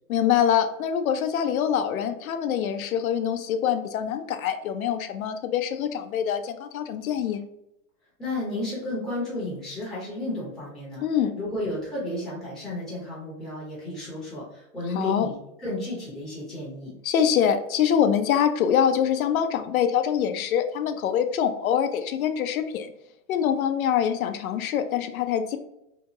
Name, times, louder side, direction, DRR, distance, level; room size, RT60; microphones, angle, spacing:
voice 1, 0.1-7.4 11.0-11.3 14.9-15.3 17.0-22.9 23.3-25.6, left 8 dB, 90° left, 8 dB, 0.5 m, -24 dB
voice 2, 8.2-11.0 11.4-16.9, left 1 dB, ahead, -9 dB, 0.6 m, -32 dB
2.8 x 2.3 x 2.8 m, 0.82 s
hypercardioid pair, 155°, 41 cm